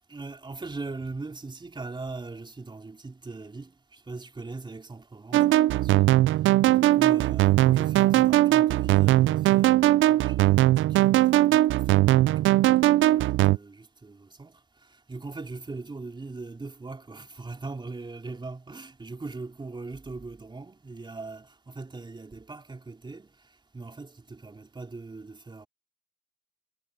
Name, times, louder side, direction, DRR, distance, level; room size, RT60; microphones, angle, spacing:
voice 1, 0.1-6.1 6.7-14.6 14.9-23.3 23.7-25.7, right 3 dB, 25° right, 3.7 m, -40 dB
sound 1, 5.3-13.6, right 15 dB, 75° right, 0.5 m, -20 dB
cardioid pair, 90°, 20 cm